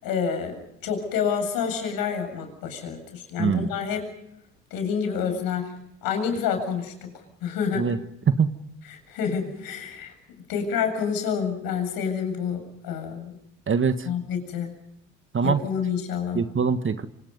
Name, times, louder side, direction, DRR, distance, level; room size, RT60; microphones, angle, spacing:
voice 1, 0.0-4.1 4.7-5.7 6.0-7.1 7.4-7.9 8.9-10.1 10.5-13.4 14.0-14.7 15.4-16.4, left 7 dB, 65° left, 6 dB, 7.5 m, -28 dB
voice 2, 3.4-3.7 7.8-8.0 8.3-8.5 13.7-14.1 15.3-15.6 16.3-17.1, right 6 dB, 35° right, 10 dB, 1.6 m, -23 dB
27.0 x 27.0 x 5.4 m, 0.80 s
hypercardioid pair, 55°, 37 cm